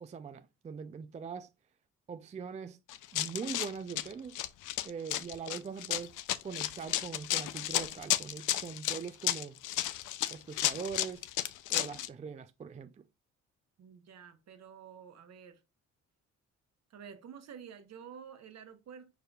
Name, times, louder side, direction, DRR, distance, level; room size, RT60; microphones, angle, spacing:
voice 1, 0.0-1.5 2.1-2.8 3.1-4.5 4.8-6.2 6.4-9.6 10.3-11.3 11.7-13.0, right 6 dB, 25° right, 0.4 m, -42 dB
Run, 2.9-12.1, left 14 dB, 85° left, 0.5 m, -33 dB
voice 2, 13.8-15.6 16.9-19.1, right 7 dB, 60° right, 1.1 m, -50 dB
4.9 x 4.7 x 2.3 m
cardioid pair, 90°, 30 cm